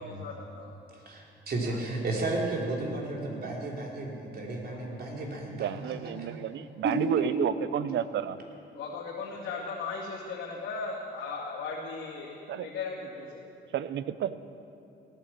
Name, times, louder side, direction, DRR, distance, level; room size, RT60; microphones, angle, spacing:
voice 1, 0.0-0.7 4.7-5.2 8.7-13.3, left 4 dB, 85° left, -6 dB, 2.4 m, -37 dB
voice 2, 0.9-6.1 6.8-6.9, right 2 dB, 50° right, -1 dB, 3.6 m, -33 dB
voice 3, 5.5-8.4 12.5-12.7 13.7-14.4, right 10 dB, 65° right, 15 dB, 0.7 m, -31 dB
17.0 x 10.0 x 7.6 m, 2.7 s
cardioid pair, 90°, 20 cm